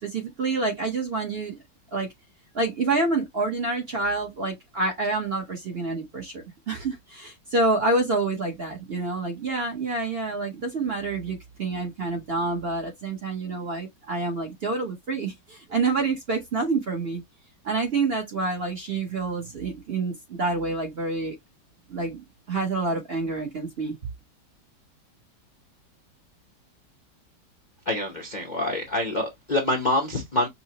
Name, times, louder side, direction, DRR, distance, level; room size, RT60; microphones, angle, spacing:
voice 1, 0.0-1.6 1.9-2.1 2.5-17.2 17.6-21.4 21.9-24.0, right 3 dB, 45° right, 0.8 m, -27 dB
voice 2, 27.9-30.5, left 1 dB, 45° left, 0.6 m, -26 dB
5.6 x 2.0 x 2.8 m
omnidirectional pair, 1.8 m